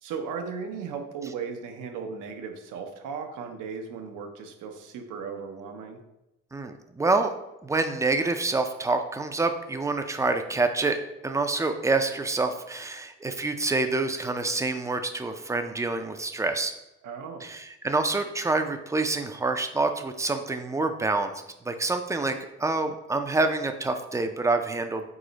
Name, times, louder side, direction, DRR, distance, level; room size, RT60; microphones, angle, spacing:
voice 1, 0.0-6.0 17.0-17.5, right 5 dB, 85° right, 5 dB, 0.7 m, -36 dB
voice 2, 6.5-7.3 7.6-11.0 11.2-16.7 17.4-21.3 21.6-25.1, right 3 dB, 10° right, 6 dB, 0.3 m, -27 dB
4.8 x 2.1 x 3.8 m, 0.93 s
cardioid pair, 90°, 30 cm